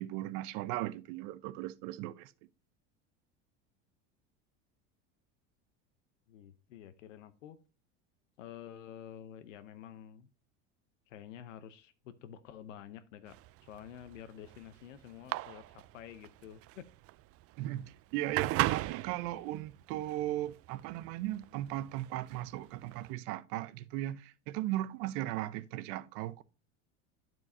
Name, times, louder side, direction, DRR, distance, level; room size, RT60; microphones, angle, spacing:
voice 1, 0.0-2.3 17.6-26.4, right 15 dB, 65° right, 0.7 m, -37 dB
voice 2, 6.3-7.6 8.4-10.3 11.1-13.4 13.6-16.9, left 10 dB, 90° left, 0.8 m, -49 dB
sound 1, 13.3-23.1, right 18 dB, 40° right, 0.4 m, -38 dB
12.5 x 4.6 x 2.6 m
supercardioid pair, 95°, 37 cm